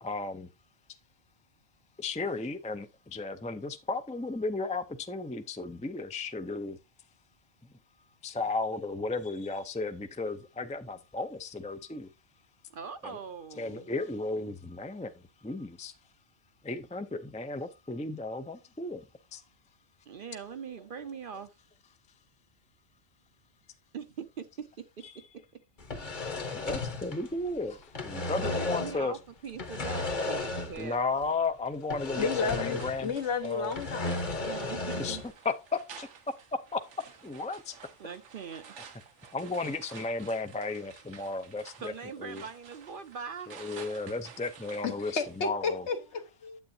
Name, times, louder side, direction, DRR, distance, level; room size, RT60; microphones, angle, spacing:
voice 1, 0.0-0.5 2.0-6.8 8.2-12.1 13.0-13.2 13.6-15.9 16.6-19.0 19.3-19.4 26.5-29.1 30.8-33.1 33.4-33.7 35.0-35.2 35.4-36.1 36.7-36.8 37.2-37.8 39.3-41.9 42.2-42.4 43.5-45.9, left 3 dB, 10° left, 0.3 m, -34 dB
voice 2, 12.7-13.9 20.1-21.5 23.9-25.6 28.2-31.3 34.4-35.2 38.0-38.6 41.8-43.6, right 6 dB, 55° right, 0.7 m, -42 dB
sound 1, 25.8-27.5 27.8-29.0 29.5-30.9 31.2-31.3 31.9-33.1 33.4-35.3, left 3 dB, 45° left, 1.2 m, -34 dB
voice 3, 32.2-34.3 44.8-46.6, left 5 dB, 70° left, 1.4 m, -32 dB
sound 2, 32.4-45.4, right 6 dB, 85° right, 1.2 m, -51 dB
9.3 x 7.9 x 2.7 m
omnidirectional pair, 1.2 m